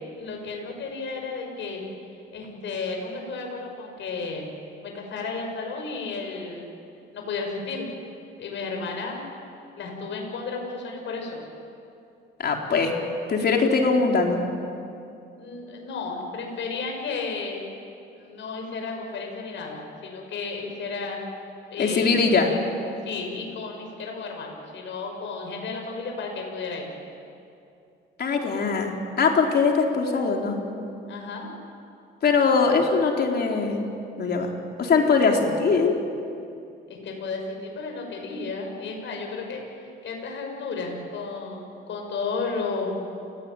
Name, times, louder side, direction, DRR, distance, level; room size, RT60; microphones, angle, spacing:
voice 1, 0.2-1.8 2.3-4.4 4.8-6.7 7.1-7.9 8.4-9.2 9.8-11.4 15.4-17.6 18.2-21.2 21.7-22.6 23.1-26.9 31.1-31.5 36.9-39.6 40.0-42.9, left 4 dB, 70° left, 2 dB, 7.0 m, -33 dB
voice 2, 12.4-12.9 13.3-14.4 21.8-22.5 28.2-30.6 32.2-33.8 34.2-34.5 34.8-35.9, left 4 dB, 55° left, 1 dB, 4.1 m, -21 dB
29.5 x 18.5 x 9.2 m, 2.5 s
cardioid pair, 90°, 20 cm